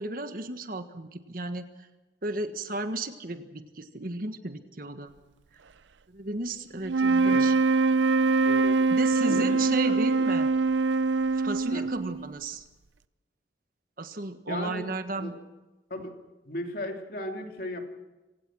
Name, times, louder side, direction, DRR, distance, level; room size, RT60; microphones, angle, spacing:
voice 1, 0.0-1.9 2.2-5.1 6.1-7.6 8.9-10.5 11.3-12.6 14.0-15.3, right 2 dB, 50° right, 8 dB, 1.5 m, -34 dB
sound 1, 6.8-12.3, right 4 dB, 90° right, 0.6 m, -23 dB
voice 2, 8.4-8.8 9.2-9.9 11.7-11.9 14.5-15.3 15.9-16.1 16.5-17.8, left 1 dB, 55° left, 3 dB, 3.0 m, -36 dB
25.5 x 17.0 x 6.3 m, 1.1 s
head